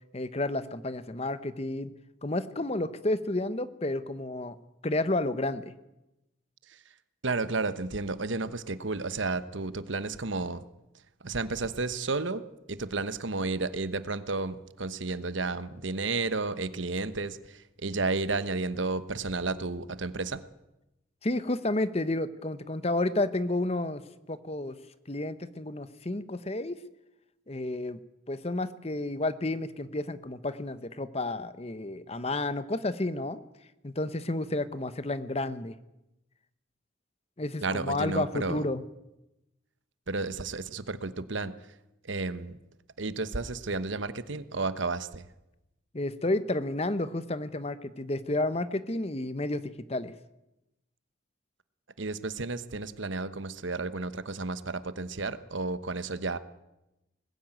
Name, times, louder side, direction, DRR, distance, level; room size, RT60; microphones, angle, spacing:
voice 1, 0.1-1.9 2.2-4.6 4.8-5.7 21.2-24.0 24.3-24.8 25.1-26.8 27.5-28.0 28.3-33.4 33.8-35.8 37.4-38.8 45.9-49.6 49.9-50.1, left 2 dB, 30° left, 14 dB, 0.9 m, -31 dB
voice 2, 7.2-10.7 11.2-12.4 12.7-20.4 37.6-38.7 40.1-41.6 42.0-42.6 43.0-45.3 52.0-56.4, right 3 dB, 80° right, 14 dB, 1.1 m, -32 dB
20.0 x 16.0 x 9.1 m, 0.93 s
head